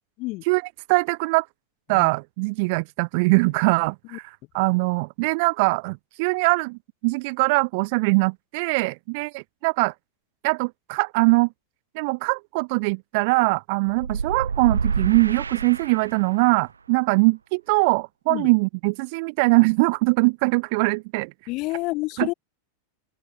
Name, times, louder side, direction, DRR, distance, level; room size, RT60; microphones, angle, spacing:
voice 1, 0.4-1.5 1.9-9.9 10.4-11.5 11.9-21.3 22.2-22.3, right 29 dB, 45° right, 0.5 m, -22 dB
sound 1, 13.9-16.5, right 5 dB, 75° right, 1.4 m, -28 dB
voice 2, 21.5-22.3, left 23 dB, 40° left, 1.3 m, -28 dB
open air
figure-of-eight pair, 90°, 0 cm